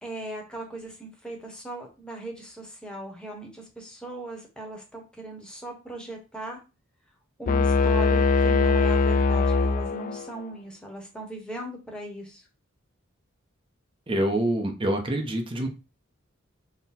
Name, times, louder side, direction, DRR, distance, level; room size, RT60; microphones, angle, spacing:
voice 1, 0.0-6.6 7.4-12.4, right 1 dB, 5° left, 0 dB, 1.0 m, -39 dB
sound 1, 7.5-10.4, left 4 dB, 40° left, 0.3 m, -21 dB
voice 2, 14.1-15.7, right 1 dB, 25° right, 3 dB, 0.7 m, -26 dB
4.1 x 2.1 x 4.1 m, 0.30 s
head